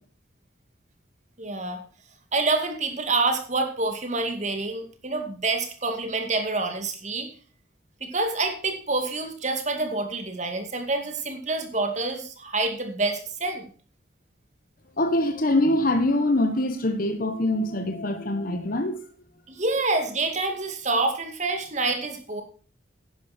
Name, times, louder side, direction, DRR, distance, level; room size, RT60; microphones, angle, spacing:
voice 1, 1.4-1.8 2.3-7.3 8.0-13.7 19.5-22.4, right 3 dB, 40° right, 5 dB, 2.3 m, -27 dB
voice 2, 15.0-19.0, left 1 dB, 50° left, 7 dB, 1.2 m, -24 dB
11.5 x 9.8 x 4.4 m, 0.41 s
head